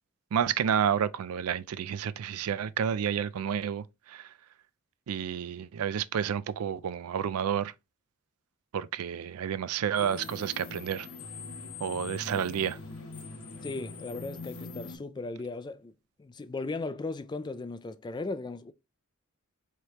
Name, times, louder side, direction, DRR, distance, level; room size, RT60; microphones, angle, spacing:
voice 1, 0.3-4.3 5.1-7.7 8.7-11.1 11.8-12.8, right 8 dB, 85° right, 0.4 m, -30 dB
sound 1, 10.0-15.0, left 3 dB, 75° left, 1.1 m, -42 dB
voice 2, 13.6-15.9 16.2-18.7, left 3 dB, 20° left, 0.3 m, -37 dB
4.6 x 3.3 x 2.9 m
head